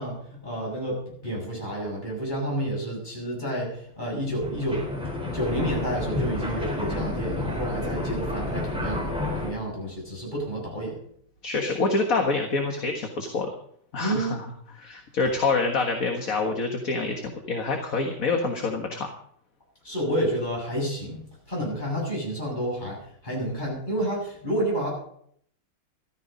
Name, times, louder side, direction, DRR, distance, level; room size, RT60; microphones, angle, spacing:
voice 1, 0.0-4.9 5.3-11.0 14.0-14.3 19.8-21.2 21.5-24.9, right 1 dB, 20° left, -2 dB, 7.2 m, -30 dB
sound 1, 4.1-9.5, left 2 dB, ahead, 4.1 m, -30 dB
voice 2, 11.4-13.5 13.9-14.5 14.7-19.1, left 3 dB, 40° left, 3 dB, 1.8 m, -26 dB
14.0 x 13.0 x 5.3 m, 0.66 s
omnidirectional pair, 2.4 m